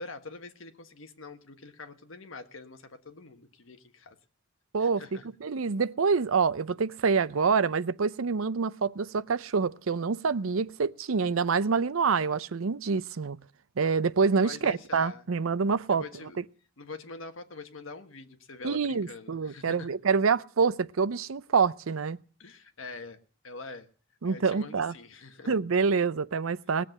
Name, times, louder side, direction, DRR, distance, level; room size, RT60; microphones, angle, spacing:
voice 1, 0.0-4.2 4.8-5.2 14.4-15.3 15.9-16.4 16.8-19.9 22.4-23.2 23.4-23.9 24.2-25.5, left 3 dB, 70° left, 1.5 m, -44 dB
voice 2, 4.7-13.4 13.8-16.0 18.6-22.2 24.2-24.9 25.5-26.8, right 5 dB, 85° right, 0.6 m, -26 dB
19.0 x 7.6 x 7.8 m
head